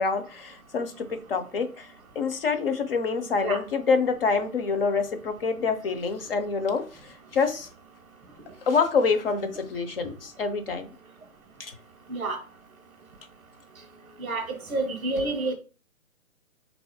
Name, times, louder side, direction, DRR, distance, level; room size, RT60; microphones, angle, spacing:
voice 1, 0.0-1.9 2.1-7.7 8.6-10.9 11.6-11.7, left 5 dB, 45° left, 7 dB, 0.7 m, -26 dB
voice 2, 14.2-15.5, right 2 dB, 5° right, -10 dB, 0.4 m, -29 dB
4.0 x 2.7 x 4.7 m, 0.36 s
figure-of-eight pair, 140°, 42 cm